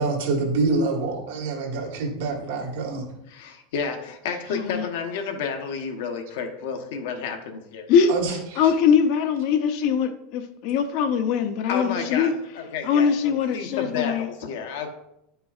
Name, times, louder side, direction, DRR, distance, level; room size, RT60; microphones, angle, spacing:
voice 1, 0.0-3.0 8.1-8.6, right 3 dB, 75° right, 1.6 m, -26 dB
voice 2, 2.3-2.7 3.3-7.9 11.7-14.9, left 6 dB, 65° left, 1.0 m, -31 dB
voice 3, 4.5-4.9 7.9-12.3 12.8-14.3, left 7 dB, 45° left, 0.6 m, -22 dB
9.8 x 5.5 x 2.4 m
supercardioid pair, 170°, 0 cm